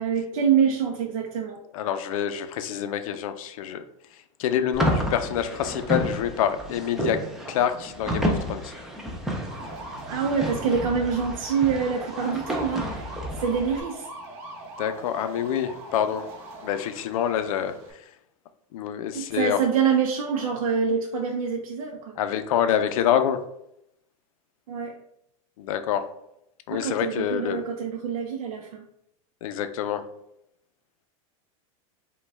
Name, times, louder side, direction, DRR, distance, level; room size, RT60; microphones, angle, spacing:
voice 1, 0.0-1.6 10.1-14.1 19.1-22.2 24.7-25.0 26.7-28.8, right 6 dB, 80° right, 1 dB, 0.6 m, -26 dB
voice 2, 1.7-3.8 4.4-7.2 7.5-8.7 14.8-16.3 16.6-17.8 18.7-19.6 22.2-23.4 25.6-26.0 26.7-27.6 29.4-30.0, left 9 dB, 75° left, 10 dB, 0.5 m, -26 dB
sound 1, 4.7-13.8, equal, 5° right, 0.3 m, -31 dB
sound 2, 9.4-17.9, right 2 dB, 45° right, 0.8 m, -41 dB
5.1 x 2.3 x 3.4 m, 0.79 s
supercardioid pair, 160°, 18 cm